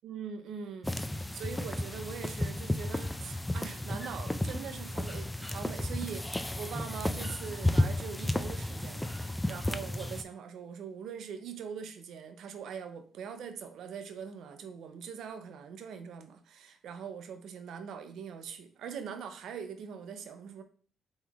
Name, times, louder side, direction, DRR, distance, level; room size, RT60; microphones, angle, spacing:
voice 1, 0.0-20.6, right 7 dB, 75° right, 0.5 m, -42 dB
sound 1, 0.8-10.2, left 1 dB, 10° left, 0.3 m, -33 dB
3.7 x 3.1 x 3.4 m
cardioid pair, 90°, 0 cm